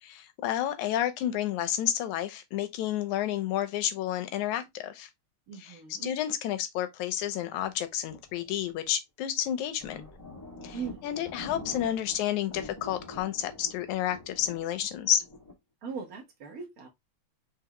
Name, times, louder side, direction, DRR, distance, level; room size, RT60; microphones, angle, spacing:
voice 1, 0.0-5.1 5.5-10.0 10.6-15.2, left 11 dB, 85° left, 2.1 m, -30 dB
voice 2, 5.5-6.1 10.7-11.0 15.8-16.9, right 5 dB, 85° right, 0.7 m, -39 dB
sound 1, 7.2-8.9 9.4-9.5 9.7-12.2 12.5-15.5, left 2 dB, 20° left, 0.5 m, -46 dB
4.7 x 3.6 x 2.9 m
omnidirectional pair, 3.3 m